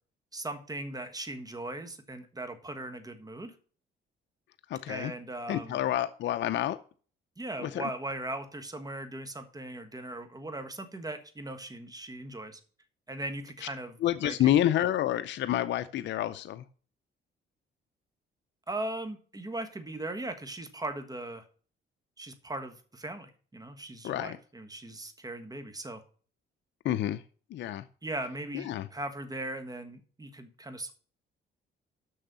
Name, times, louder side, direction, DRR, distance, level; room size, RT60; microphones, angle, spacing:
voice 1, 0.3-3.5 4.9-5.8 7.4-12.6 13.1-14.4 18.7-21.4 22.2-26.0 28.0-30.9, right 2 dB, 20° right, 8 dB, 1.5 m, -39 dB
voice 2, 4.7-5.1 5.5-6.8 7.6-7.9 14.0-16.6 24.0-24.4 26.8-27.2 27.5-27.8 28.5-28.9, left 12 dB, 65° left, 11 dB, 0.5 m, -28 dB
6.4 x 6.3 x 6.9 m, 0.41 s
cardioid pair, 90°, 20 cm